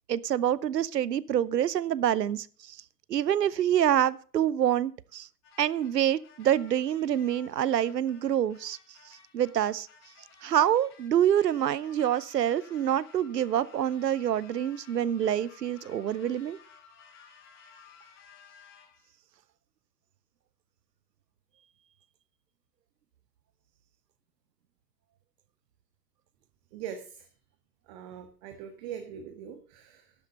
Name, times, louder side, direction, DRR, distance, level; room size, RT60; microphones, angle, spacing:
voice 1, 0.1-2.8 3.1-5.3 5.6-8.8 9.3-9.9 10.4-16.6, right 10 dB, 85° right, 21 dB, 0.8 m, -26 dB
sound 1, 5.4-19.1, left 6 dB, 40° left, 5.1 m, -56 dB
voice 2, 26.7-27.3 27.9-30.1, right 8 dB, 45° right, 6 dB, 1.7 m, -42 dB
11.5 x 8.3 x 5.6 m, 0.42 s
hypercardioid pair, 110°, 48 cm